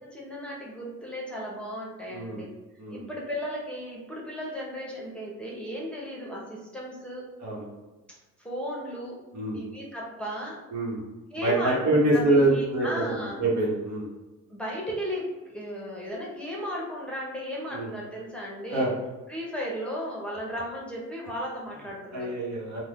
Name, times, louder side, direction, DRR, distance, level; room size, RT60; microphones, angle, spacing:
voice 1, 0.0-2.5 2.9-7.3 8.4-9.2 9.5-10.6 11.3-13.4 14.5-18.9 19.3-22.4, equal, 5° left, -4 dB, 0.8 m, -35 dB
voice 2, 2.1-2.4 2.8-3.0 7.4-7.7 9.3-9.6 10.7-11.0 11.4-14.1 17.7-17.9 18.7-18.9 22.1-22.8, right 2 dB, 70° right, -4 dB, 1.1 m, -25 dB
2.6 x 2.2 x 3.4 m, 1.1 s
cardioid pair, 90°, 30 cm